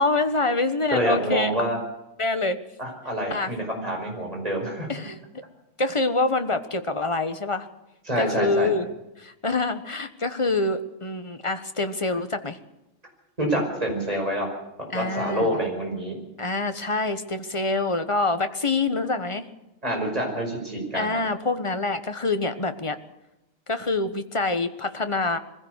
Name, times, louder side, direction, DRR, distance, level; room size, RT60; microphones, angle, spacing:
voice 1, 0.0-1.5 2.2-2.6 3.3-3.5 4.9-5.2 5.8-7.7 8.2-8.9 9.2-12.6 14.9-15.6 16.4-19.4 20.9-23.0 23.7-25.4, left 3 dB, 25° left, 9 dB, 1.2 m, -26 dB
voice 2, 0.9-1.8 2.8-4.9 8.1-8.7 13.4-14.5 14.9-16.2 19.8-21.1, equal, 30° right, 1 dB, 5.5 m, -26 dB
22.0 x 16.0 x 8.2 m, 0.92 s
omnidirectional pair, 1.3 m